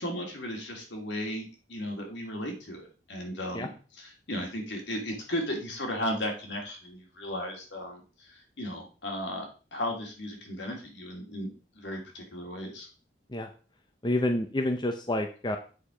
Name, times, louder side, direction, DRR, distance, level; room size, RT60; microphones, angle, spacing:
voice 1, 0.0-2.8 3.1-3.7 4.0-9.5 9.7-11.5 11.7-12.9, equal, 70° left, 1 dB, 2.6 m, -35 dB
voice 2, 14.0-15.6, left 1 dB, 25° left, 5 dB, 0.7 m, -28 dB
8.6 x 5.1 x 5.0 m, 0.37 s
head